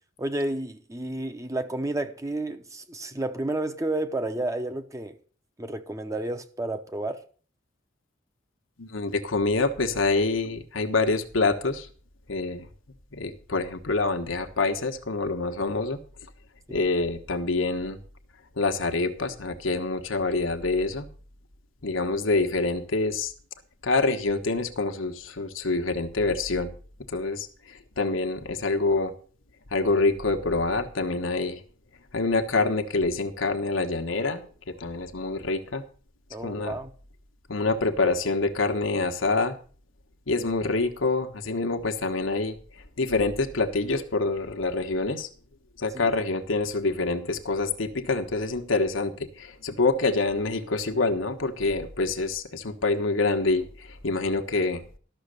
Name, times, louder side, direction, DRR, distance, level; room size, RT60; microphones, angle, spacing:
voice 1, 0.2-5.2 5.6-7.2 16.7-16.8 36.3-36.9 45.9-46.0, right 1 dB, 15° right, 0.9 m, -31 dB
voice 2, 8.8-11.9 12.3-12.7 13.1-16.0 16.7-18.0 18.6-21.1 21.8-23.3 23.8-26.7 27.1-29.1 29.7-31.6 32.1-35.8 36.4-36.8 37.5-39.6 40.3-42.6 43.0-45.3 45.8-54.8, left 3 dB, 75° left, 1.3 m, -26 dB
12.5 x 6.5 x 6.6 m
head